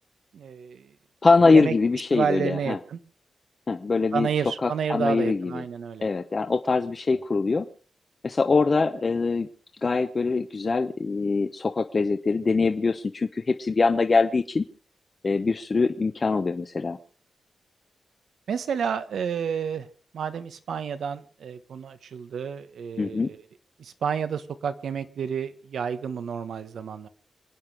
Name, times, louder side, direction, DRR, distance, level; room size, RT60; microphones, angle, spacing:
voice 1, 0.3-0.9 1.5-1.7 2.1-3.0 4.1-6.0 18.5-19.9 20.1-23.4 23.8-27.1, right 7 dB, 80° right, 11 dB, 1.4 m, -30 dB
voice 2, 1.2-2.8 3.7-4.3 4.6-5.6 6.0-7.7 8.2-9.5 9.8-14.6 15.2-17.0 23.0-23.3, left 4 dB, 30° left, 6 dB, 0.9 m, -23 dB
26.5 x 9.4 x 4.9 m, 0.41 s
wide cardioid pair, 180°, 0 cm